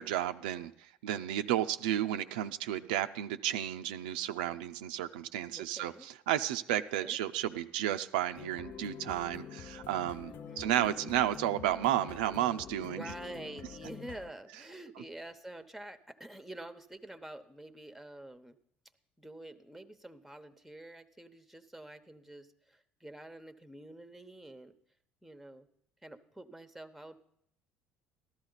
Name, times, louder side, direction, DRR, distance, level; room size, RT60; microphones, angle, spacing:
voice 1, 0.0-13.0, right 12 dB, 85° right, 9 dB, 0.4 m, -32 dB
voice 2, 5.5-6.1 6.7-7.2 10.2-10.7 12.8-18.6 19.2-24.7 25.2-25.7 26.0-27.2, right 1 dB, ahead, 10 dB, 0.9 m, -48 dB
sound 1, 8.4-14.3, left 7 dB, 50° left, 0.5 m, -46 dB
14.0 x 12.5 x 4.0 m, 0.72 s
hypercardioid pair, 70°, 5 cm